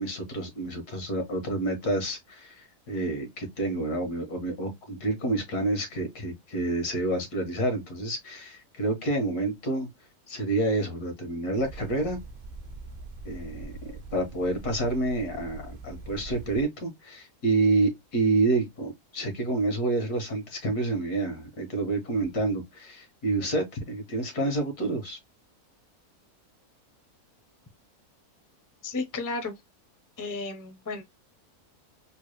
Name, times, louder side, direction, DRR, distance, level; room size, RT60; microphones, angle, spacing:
voice 1, 0.0-9.9 10.3-12.2 13.3-25.2, right 2 dB, 80° left, 1.9 m, -28 dB
sound 1, 11.5-16.6, right 2 dB, 50° right, 0.5 m, -43 dB
voice 2, 28.8-29.6 30.2-31.0, left 3 dB, 20° left, 0.5 m, -33 dB
3.8 x 2.1 x 3.1 m
omnidirectional pair, 1.6 m